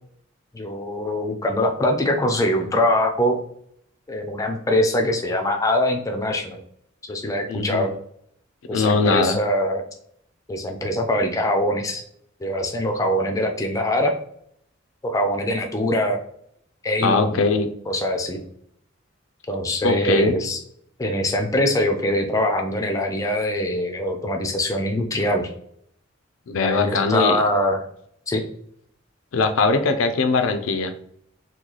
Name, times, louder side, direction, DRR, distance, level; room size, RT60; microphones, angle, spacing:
voice 1, 0.5-3.4 4.1-6.6 7.0-7.9 8.7-9.8 10.5-12.0 12.4-14.1 15.0-16.2 16.8-17.4 17.9-18.4 19.5-20.6 21.0-25.5 26.6-27.8 28.3-28.4, left 1 dB, 15° left, 4 dB, 0.4 m, -23 dB
voice 2, 7.5-7.9 8.7-9.4 17.0-17.7 19.8-20.4 26.5-27.4 29.3-30.9, left 4 dB, 75° left, 8 dB, 0.4 m, -21 dB
3.0 x 2.3 x 3.7 m, 0.67 s
head